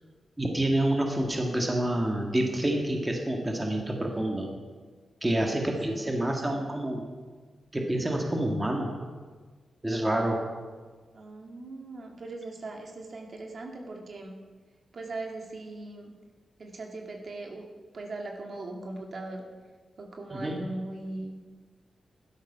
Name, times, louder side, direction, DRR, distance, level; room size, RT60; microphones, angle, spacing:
voice 1, 0.4-4.5 5.2-7.0 7.7-8.9 9.8-10.4 20.3-20.6, right 1 dB, 10° right, 1 dB, 1.8 m, -28 dB
voice 2, 5.3-6.6 11.1-14.3 14.9-16.1 16.6-17.7 17.9-19.4 20.0-21.4, right 2 dB, 45° right, 1 dB, 1.9 m, -40 dB
16.5 x 12.5 x 5.6 m, 1.4 s
wide cardioid pair, 165°, 0 cm